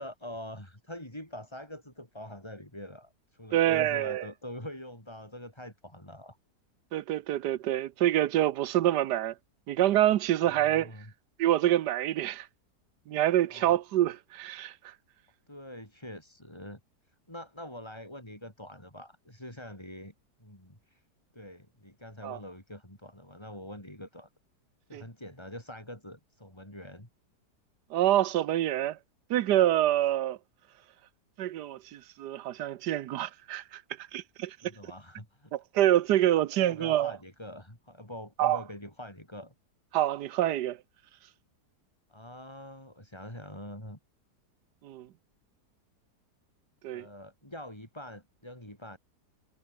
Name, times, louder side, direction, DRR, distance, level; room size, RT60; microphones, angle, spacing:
voice 1, 0.0-6.4 10.4-11.1 13.5-13.8 15.5-16.8 17.3-20.1 20.4-21.0 21.3-24.3 24.9-27.1 34.6-35.6 36.5-39.5 42.1-44.0 46.9-49.0, left 1 dB, 15° left, 5.9 m, -44 dB
voice 2, 3.5-4.3 6.9-9.3 9.7-10.9 11.4-12.5 13.1-14.9 22.2-22.4 24.9-25.0 27.9-29.0 29.3-30.4 31.4-34.6 35.5-37.2 38.4-38.6 39.9-40.8 44.8-45.1 46.8-47.1, right 13 dB, 85° right, 1.3 m, -26 dB
omnidirectional pair, 1.8 m